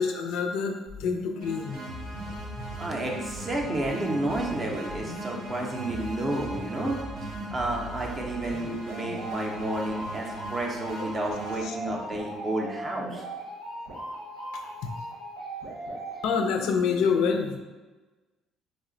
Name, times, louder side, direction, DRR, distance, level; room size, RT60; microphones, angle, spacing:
voice 1, 0.0-1.8 11.6-11.8 14.5-14.6 16.2-17.6, left 6 dB, 70° left, 4 dB, 0.3 m, -27 dB
sound 1, 0.9-16.9, right 1 dB, 85° right, 1.0 m, -39 dB
sound 2, 1.4-11.6, right 2 dB, 65° right, 0.7 m, -40 dB
voice 2, 2.8-7.0 7.5-13.2, right 1 dB, 20° right, 0 dB, 0.4 m, -31 dB
3.1 x 2.1 x 3.7 m, 1.2 s
cardioid pair, 170°, 0 cm